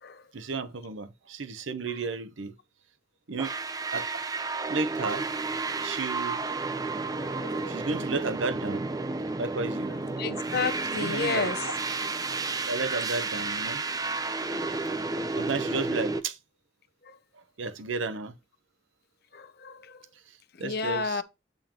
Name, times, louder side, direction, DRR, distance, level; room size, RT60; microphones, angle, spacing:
voice 1, 0.3-2.5 3.3-3.5 3.9-4.2 4.7-5.3 5.8-6.4 7.7-8.9 9.4-10.2 10.9-11.5 12.7-13.8 15.4-16.4 17.3-18.3 20.6-21.2, right 3 dB, 85° right, 0.8 m, -33 dB
sound 1, 3.4-16.2, right 3 dB, 20° right, 0.5 m, -31 dB
voice 2, 7.2-8.0 9.9-11.7 17.0-17.2 19.3-20.0 20.6-21.2, left 5 dB, 55° left, 0.7 m, -33 dB
8.8 x 5.5 x 2.9 m
head